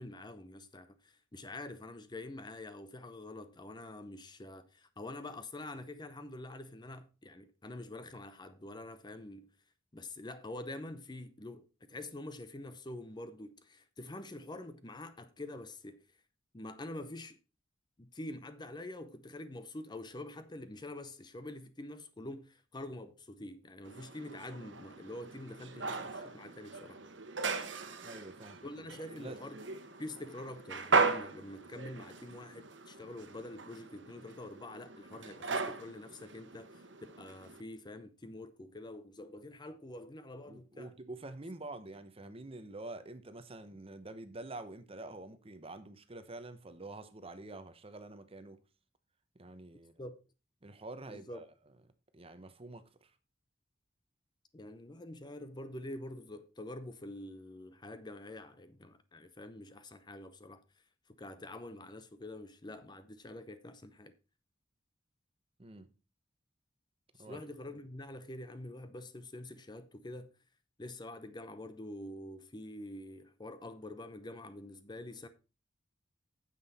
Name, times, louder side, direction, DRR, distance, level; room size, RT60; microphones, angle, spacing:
voice 1, 0.0-9.5 9.9-16.0 16.5-17.4 18.0-27.0 28.6-29.6 30.0-40.9 50.0-50.2 51.1-51.5 54.5-60.6 61.1-64.1 67.2-70.3 70.8-75.3, left 1 dB, 25° left, 0.7 m, -46 dB
sound 1, 23.9-37.6, right 4 dB, 80° right, 1.2 m, -38 dB
voice 2, 28.0-28.6 29.1-29.4 40.5-48.6 49.3-49.9 50.6-51.5 52.1-53.1 65.6-65.9 67.2-67.4, right 2 dB, 30° right, 0.9 m, -47 dB
9.4 x 7.6 x 4.1 m
head